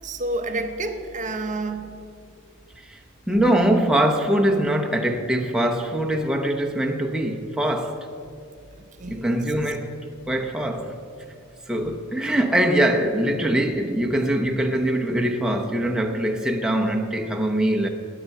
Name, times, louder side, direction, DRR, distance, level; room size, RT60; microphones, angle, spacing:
voice 1, 0.0-2.0 9.0-9.4, right 2 dB, 35° right, 0.8 m, -29 dB
voice 2, 3.3-8.1 9.1-9.9 10.3-11.0 11.7-17.9, right 1 dB, 5° right, 0.8 m, -22 dB
9.7 x 9.2 x 9.0 m
head